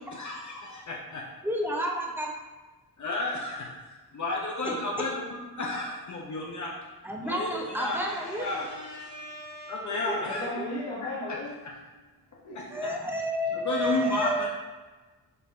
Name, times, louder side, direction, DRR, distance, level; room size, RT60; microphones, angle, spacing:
voice 1, 0.1-1.2 3.0-6.7 7.2-9.0 9.7-10.5 11.0-11.4 11.6-11.7 12.5-13.0 13.5-14.5, left 2 dB, 45° left, -3 dB, 0.6 m, -33 dB
voice 2, 1.4-2.3 4.6-4.7 7.0-8.5 10.1-10.7 12.7-14.5, equal, 5° right, -1 dB, 0.6 m, -31 dB
voice 3, 7.9-9.8 10.2-11.6 12.4-12.8, left 1 dB, 80° left, -10 dB, 1.0 m, -38 dB
5.1 x 2.6 x 2.2 m, 1.2 s
cardioid pair, 75°, 40 cm